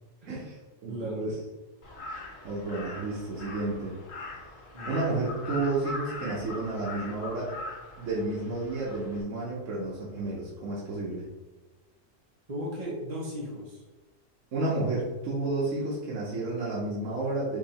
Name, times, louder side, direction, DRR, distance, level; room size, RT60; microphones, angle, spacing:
voice 1, 0.3-1.3 2.4-4.0 4.8-7.5 8.0-11.3 14.5-17.6, right 2 dB, 70° right, -6 dB, 1.3 m, -31 dB
voice 2, 0.9-1.2 4.7-4.9 12.5-13.8, equal, 30° right, -6 dB, 1.2 m, -36 dB
Crow, 1.8-9.2, left 2 dB, 80° left, 1.3 m, -41 dB
4.4 x 2.8 x 4.1 m, 1.2 s
omnidirectional pair, 1.4 m